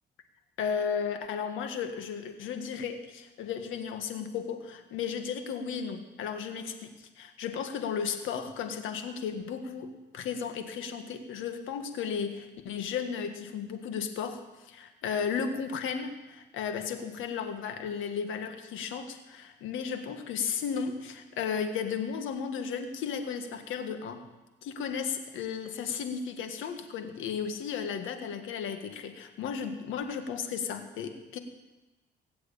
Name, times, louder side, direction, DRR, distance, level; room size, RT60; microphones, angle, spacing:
voice 1, 0.6-24.3 24.6-31.4, left 6 dB, 90° left, 7 dB, 1.7 m, -34 dB
19.5 x 7.8 x 8.8 m, 1.1 s
cardioid pair, 90°, 20 cm